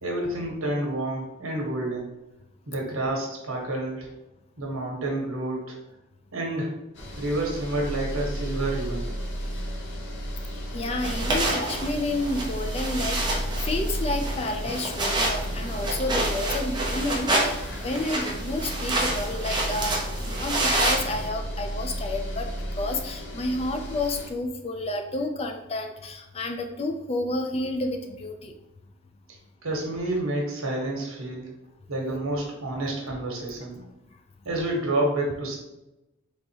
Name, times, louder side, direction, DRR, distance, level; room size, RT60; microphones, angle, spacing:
voice 1, 0.0-2.1 2.7-4.1 4.6-5.8 6.3-6.7 7.2-9.1 29.6-31.5 31.9-33.8 34.4-35.5, right 1 dB, 80° right, -1 dB, 1.3 m, -29 dB
sound 1, 6.9-24.3, equal, 55° left, 0.8 m, -33 dB
voice 2, 10.7-22.5 22.8-28.5 33.8-33.9, left 2 dB, 30° left, 5 dB, 0.4 m, -30 dB
sound 2, 11.0-21.3, right 1 dB, 20° right, 0.7 m, -28 dB
3.9 x 3.6 x 2.9 m, 0.95 s
head